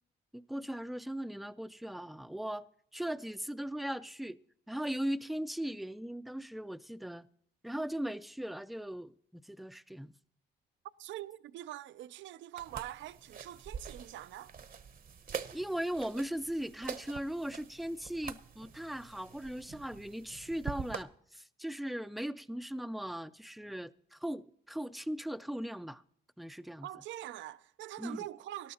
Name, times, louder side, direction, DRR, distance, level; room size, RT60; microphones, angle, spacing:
voice 1, 0.3-2.6 2.9-4.4 4.7-7.3 7.6-10.1 15.5-26.0 26.4-26.9 28.0-28.2, equal, ahead, 0.4 m, -38 dB
voice 2, 11.0-14.5 26.8-28.7, right 14 dB, 70° right, 0.4 m, -44 dB
sound 1, 12.6-21.0, right 7 dB, 45° right, 0.8 m, -45 dB
18.5 x 12.5 x 2.8 m
cardioid pair, 90°, 20 cm